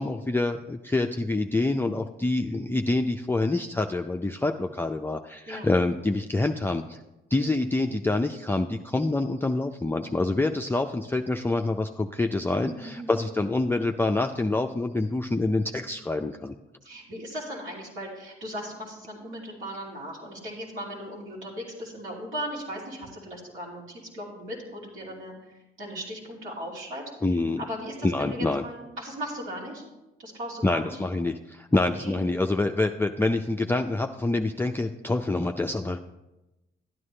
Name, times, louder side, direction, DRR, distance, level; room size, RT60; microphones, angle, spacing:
voice 1, 0.0-7.0 7.3-16.6 27.2-27.6 28.0-28.6 30.6-36.0, left 2 dB, 10° left, 4 dB, 0.4 m, -26 dB
voice 2, 12.6-13.2 16.8-27.0 27.6-29.8 30.2-31.0 32.0-32.2, equal, 80° right, -6 dB, 3.1 m, -37 dB
12.0 x 9.4 x 3.3 m, 1.0 s
cardioid pair, 70°, 21 cm